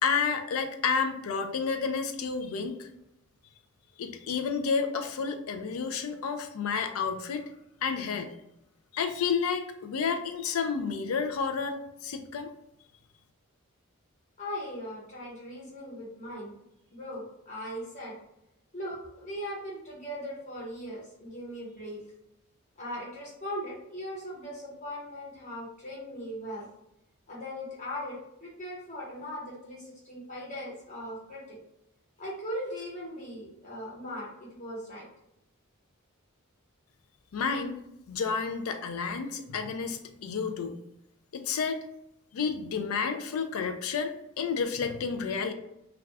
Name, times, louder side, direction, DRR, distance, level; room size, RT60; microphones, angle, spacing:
voice 1, 0.0-2.9 4.0-7.5 7.8-8.3 8.9-12.5 37.3-37.8 38.1-40.8 41.3-41.8 42.3-45.5, left 5 dB, 75° left, 7 dB, 0.4 m, -30 dB
voice 2, 14.4-16.5 16.9-18.2 18.7-22.0 22.8-26.7 27.3-31.6 32.2-35.1, equal, 35° left, -5 dB, 1.0 m, -39 dB
2.3 x 2.3 x 3.3 m, 0.82 s
head